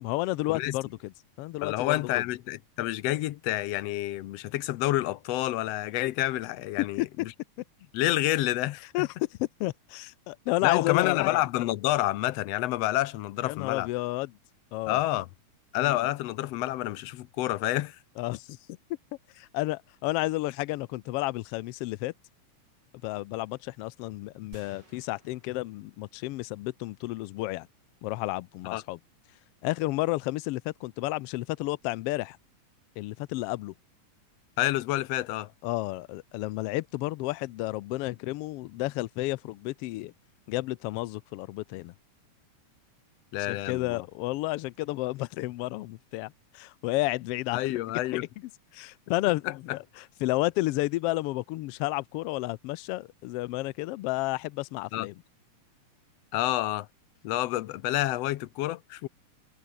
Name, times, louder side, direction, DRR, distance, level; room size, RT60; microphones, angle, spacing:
voice 1, 0.0-1.1 1.4-2.2 7.0-7.1 8.9-11.4 13.4-14.3 14.7-15.0 15.8-16.1 18.2-18.8 19.3-22.1 23.0-27.7 28.0-29.0 29.6-32.4 33.0-33.7 35.6-40.1 40.5-41.9 43.5-47.6 48.1-48.3 48.7-55.1, left 19 dB, 90° left, 1.3 m, -31 dB
voice 2, 1.6-7.3 7.9-9.1 10.6-13.9 14.9-15.3 15.7-18.0 28.7-28.8 34.6-35.5 43.3-44.1 47.5-48.3 49.7-49.8 54.9-55.1 56.3-56.9 57.2-59.1, left 16 dB, 70° left, 1.7 m, -28 dB
sound 1, 24.5-26.8, right 3 dB, 35° right, 6.1 m, -57 dB
omnidirectional pair, 3.4 m